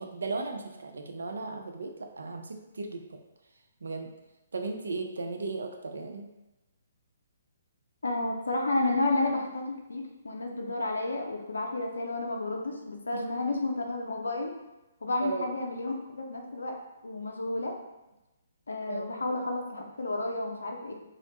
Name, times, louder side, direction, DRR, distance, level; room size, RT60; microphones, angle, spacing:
voice 1, 0.0-3.2 3.8-4.1 4.5-6.3 13.1-13.2 15.2-15.5 18.9-19.0, right 3 dB, 70° right, 4 dB, 0.3 m, -36 dB
voice 2, 8.0-14.5 15.0-16.8 17.0-17.7 18.7-20.9, left 2 dB, 70° left, 2 dB, 0.4 m, -31 dB
2.4 x 2.1 x 2.8 m, 0.99 s
figure-of-eight pair, 130°, 0 cm